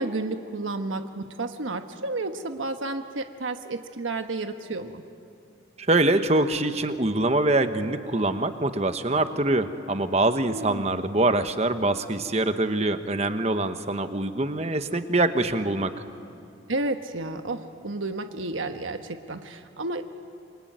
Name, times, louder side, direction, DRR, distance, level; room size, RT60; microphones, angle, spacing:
voice 1, 0.0-5.0 10.5-11.1 16.7-20.0, right 2 dB, 90° right, 7 dB, 1.2 m, -31 dB
voice 2, 5.8-15.9, right 2 dB, 35° right, 9 dB, 1.1 m, -24 dB
27.0 x 23.0 x 9.3 m, 2.5 s
head